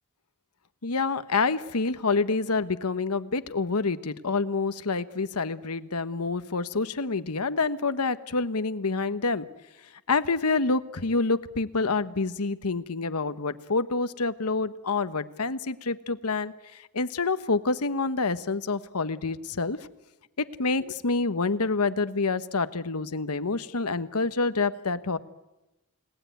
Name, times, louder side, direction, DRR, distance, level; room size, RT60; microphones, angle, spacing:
voice 1, 0.8-9.5 10.1-16.5 16.9-19.8 20.4-25.2, left 3 dB, 85° left, 12 dB, 1.2 m, -27 dB
30.0 x 18.5 x 9.3 m, 1.0 s
head